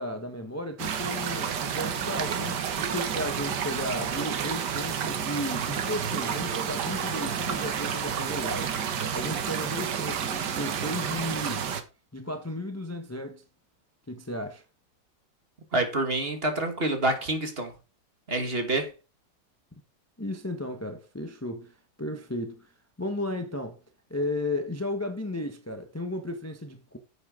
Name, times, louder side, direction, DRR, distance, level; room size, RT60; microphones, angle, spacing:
voice 1, 0.0-11.7 12.1-13.4 14.1-14.6 20.2-22.7 23.0-23.8 24.1-27.0, left 1 dB, 10° left, 0.8 m, -34 dB
sound 1, 0.8-11.8, right 7 dB, 65° right, 1.7 m, -30 dB
voice 2, 15.7-17.7 18.3-18.9, right 2 dB, 35° right, 1.7 m, -27 dB
9.8 x 7.8 x 3.7 m
omnidirectional pair, 2.0 m